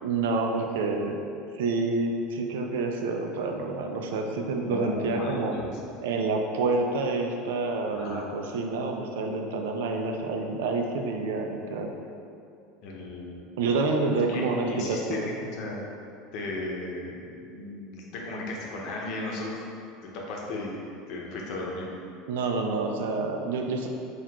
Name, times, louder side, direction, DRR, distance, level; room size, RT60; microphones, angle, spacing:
voice 1, 0.0-1.2 1.6-5.5 6.0-11.9 13.6-15.3 22.3-23.9, right 3 dB, 85° right, 3 dB, 0.4 m, -28 dB
voice 2, 4.6-5.7 7.9-8.3 12.8-13.4 14.3-15.8 16.3-19.6 20.0-20.7 21.1-21.9, left 2 dB, 55° left, -2 dB, 0.7 m, -35 dB
4.6 x 2.4 x 3.5 m, 2.6 s
supercardioid pair, 130°, 0 cm